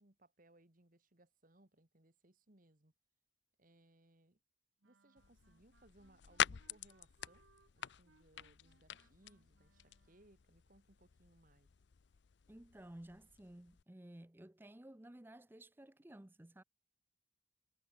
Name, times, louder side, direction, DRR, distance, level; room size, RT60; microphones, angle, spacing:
voice 1, 0.0-2.9 3.6-4.4 4.8-7.4 7.7-11.7, right 1 dB, 40° right, 2.0 m, -68 dB
sound 1, 4.8-10.5, right 4 dB, 70° right, 1.1 m, -73 dB
sound 2, 5.2-13.8, left 9 dB, 55° left, 0.5 m, -45 dB
voice 2, 12.5-16.6, right 1 dB, 10° right, 0.5 m, -55 dB
head